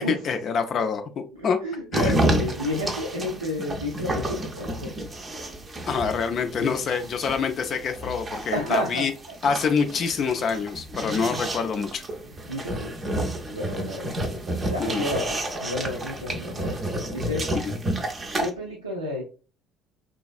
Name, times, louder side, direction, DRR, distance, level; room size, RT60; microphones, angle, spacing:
voice 1, 0.1-1.6 1.9-2.1 5.9-9.1 9.4-12.0 14.8-15.1 17.5-17.7, left 5 dB, 45° left, 7 dB, 0.3 m, -26 dB
voice 2, 1.4-5.1 8.5-9.1 12.5-13.1 13.5-14.1 14.7-16.8 17.1-17.5 18.4-19.2, left 1 dB, 85° right, -3 dB, 0.4 m, -31 dB
sound 1, 1.9-18.5, right 1 dB, 30° right, 0.5 m, -30 dB
3.1 x 2.3 x 2.4 m, 0.35 s
figure-of-eight pair, 55°, 0 cm